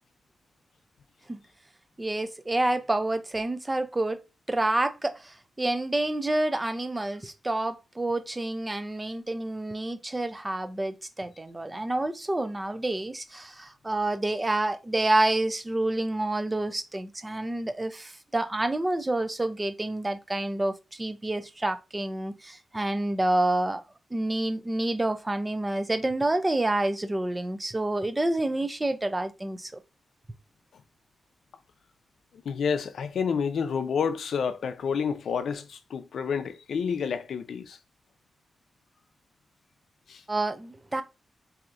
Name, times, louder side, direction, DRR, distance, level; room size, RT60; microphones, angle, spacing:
voice 1, 2.0-23.8 24.1-29.8 40.3-41.0, right 2 dB, 15° right, 0.4 m, -28 dB
voice 2, 32.4-37.8 40.1-40.2, left 6 dB, 70° left, 0.5 m, -29 dB
4.4 x 2.7 x 2.5 m
wide cardioid pair, 170°, 0 cm